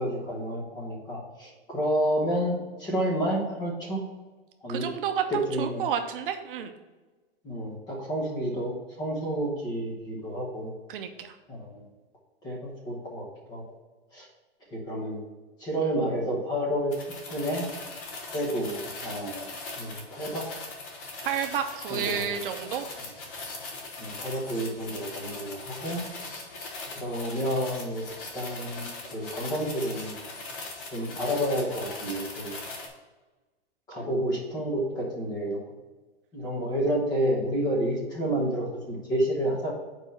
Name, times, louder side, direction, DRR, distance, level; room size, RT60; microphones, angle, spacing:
voice 1, 0.0-4.0 4.6-4.9 5.3-5.8 7.4-10.7 11.5-11.8 12.4-13.6 14.1-14.3 14.7-15.2 15.6-16.9 17.3-17.7 18.3-19.5 19.8-20.5 21.9-22.3 24.0-26.0 26.9-28.0 28.3-30.2 30.9-32.5 33.9-35.6 36.3-39.7, right 1 dB, 15° left, -2 dB, 1.0 m, -30 dB
voice 2, 4.7-5.2 5.6-6.8 10.9-11.3 21.2-22.9, right 8 dB, 55° right, 7 dB, 0.6 m, -30 dB
sound 1, 16.9-32.9, left 3 dB, 35° left, 1.1 m, -40 dB
4.8 x 4.6 x 5.5 m, 1.2 s
supercardioid pair, 175°, 32 cm